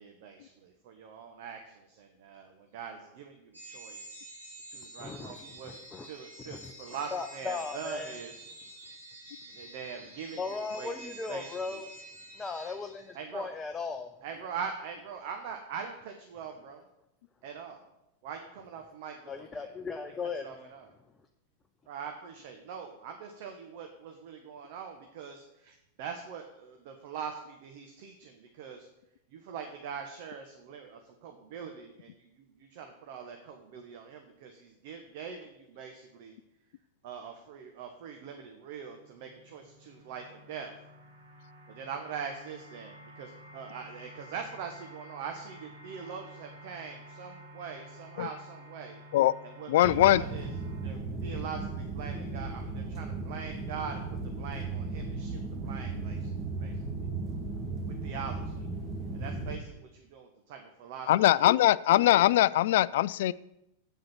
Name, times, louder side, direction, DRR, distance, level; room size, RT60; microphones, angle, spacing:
voice 1, 0.0-4.1 4.7-5.7 6.0-8.4 9.6-10.9 11.3-11.8 13.1-13.5 14.2-16.8 17.4-17.8 18.2-19.7 20.4-20.9 21.9-28.9 29.3-36.4 37.0-40.7 41.7-49.0 49.4-50.5 50.8-56.3 56.6-56.7 57.9-58.6 59.1-61.1, right 6 dB, 50° right, 5 dB, 1.2 m, -43 dB
sound 1, 3.5-13.4, right 1 dB, 85° right, 4.9 m, -48 dB
voice 2, 5.0-6.1 6.4-6.7 7.1-8.2 10.4-11.9 12.3-14.1 19.3-20.7, left 4 dB, 15° left, 6 dB, 0.7 m, -37 dB
sound 2, 38.8-50.9, equal, 65° right, 2.7 m, -51 dB
voice 3, 49.7-50.2 61.1-63.3, left 14 dB, 55° left, 20 dB, 0.3 m, -22 dB
sound 3, 49.8-59.6, right 3 dB, 25° right, 1.8 m, -36 dB
8.1 x 7.8 x 7.2 m, 0.84 s
figure-of-eight pair, 90°, 0 cm